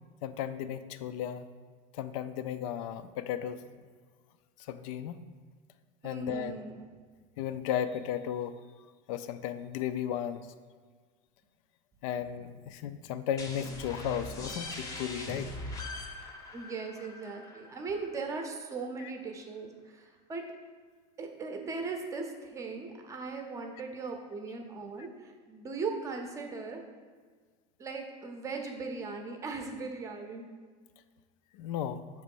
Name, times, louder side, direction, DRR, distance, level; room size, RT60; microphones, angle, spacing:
voice 1, 0.2-1.5 1.9-3.6 4.6-5.2 6.0-6.6 7.4-8.5 9.1-10.4 12.0-15.5 19.0-19.1 31.5-32.0, left 10 dB, 90° left, 11 dB, 0.4 m, -35 dB
voice 2, 6.0-6.9 16.5-20.4 21.2-26.8 27.8-30.5, right 4 dB, 20° right, 4 dB, 0.6 m, -38 dB
sound 1, 13.4-18.8, left 2 dB, 20° left, 0.7 m, -42 dB
7.2 x 3.1 x 5.3 m, 1.5 s
cardioid pair, 170°, 17 cm